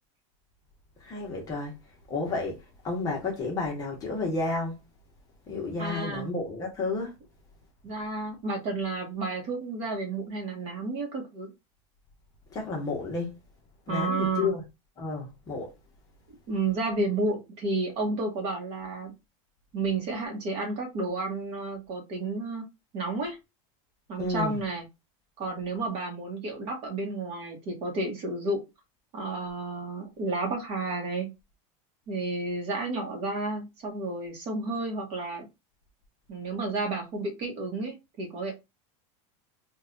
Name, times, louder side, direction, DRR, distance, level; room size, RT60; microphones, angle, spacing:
voice 1, 1.0-1.8 2.1-4.8 5.5-7.2 12.5-13.4 13.9-14.6 15.0-15.7 24.2-24.6, left 3 dB, 20° left, 0.9 m, -31 dB
voice 2, 5.8-6.3 7.8-11.5 13.9-14.5 16.5-19.1 19.7-22.6 22.9-23.4 24.1-24.8 25.4-28.6 29.1-31.3 32.1-35.5 36.3-38.5, right 3 dB, 35° right, 0.9 m, -31 dB
3.1 x 2.3 x 3.7 m
supercardioid pair, 175°, 17 cm